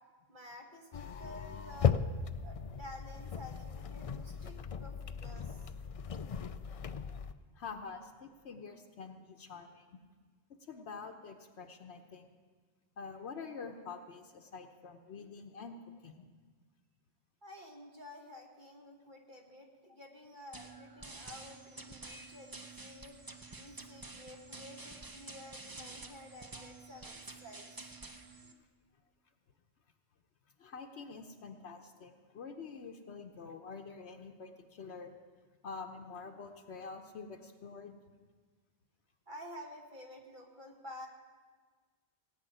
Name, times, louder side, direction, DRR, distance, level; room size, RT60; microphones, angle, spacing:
voice 1, 0.3-2.0 2.4-5.7 17.4-23.2 23.6-27.7 39.3-41.1, left 1 dB, 45° right, 1 dB, 2.0 m, -51 dB
sound 1, 0.9-7.3, left 7 dB, 60° left, 0.3 m, -37 dB
voice 2, 7.5-9.9 10.6-12.3 13.0-15.8 16.0-16.3 30.6-35.2 35.6-38.0, left 5 dB, 75° left, 4 dB, 1.1 m, -47 dB
sound 2, 20.5-28.5, right 3 dB, 20° right, 0.7 m, -49 dB
17.5 x 6.1 x 9.1 m, 1.5 s
omnidirectional pair, 1.1 m